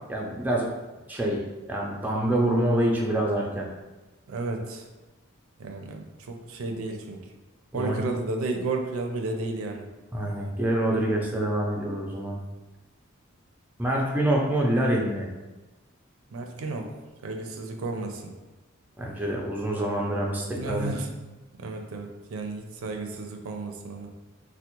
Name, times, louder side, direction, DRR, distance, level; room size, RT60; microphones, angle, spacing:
voice 1, 0.1-0.7 1.1-1.4 1.7-3.6 7.7-8.1 10.1-12.4 13.8-15.3 19.0-20.9, right 1 dB, 10° right, -2 dB, 0.4 m, -26 dB
voice 2, 4.3-4.8 5.6-7.2 7.7-9.9 16.3-16.9 17.2-18.3 20.5-21.1 21.6-24.1, right 3 dB, 85° right, 3 dB, 0.4 m, -32 dB
3.4 x 2.1 x 2.9 m, 1.1 s
head